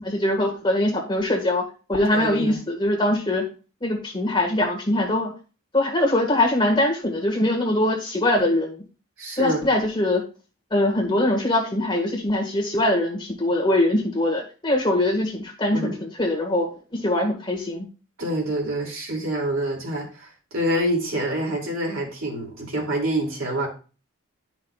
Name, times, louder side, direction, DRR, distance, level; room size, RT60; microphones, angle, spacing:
voice 1, 0.0-3.4 3.8-5.3 5.7-8.8 9.4-10.2 10.7-16.7 16.9-17.9, left 1 dB, 20° left, 0 dB, 1.7 m, -22 dB
voice 2, 2.1-2.6 9.2-9.7 15.7-15.9 18.2-23.7, right 1 dB, 70° right, -1 dB, 2.7 m, -26 dB
11.0 x 5.9 x 2.4 m, 0.34 s
head